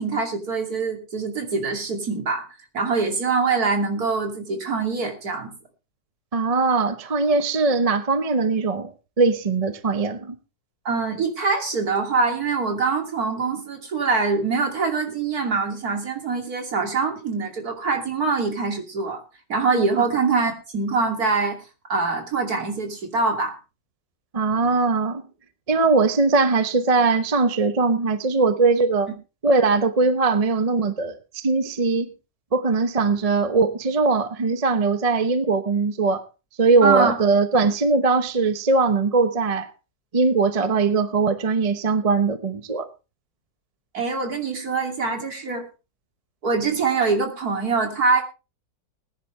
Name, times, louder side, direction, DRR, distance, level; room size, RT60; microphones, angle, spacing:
voice 1, 0.0-2.4 2.7-5.5 10.8-19.2 19.5-21.6 21.9-23.6 36.8-37.2 43.9-45.7 46.4-48.2, right 4 dB, 55° right, 3.2 m, -24 dB
voice 2, 6.3-10.3 24.3-25.2 25.7-29.1 29.4-32.1 32.5-36.2 36.6-39.7 40.1-42.9, right 4 dB, 30° right, 0.8 m, -20 dB
20.5 x 10.0 x 3.2 m
omnidirectional pair, 1.9 m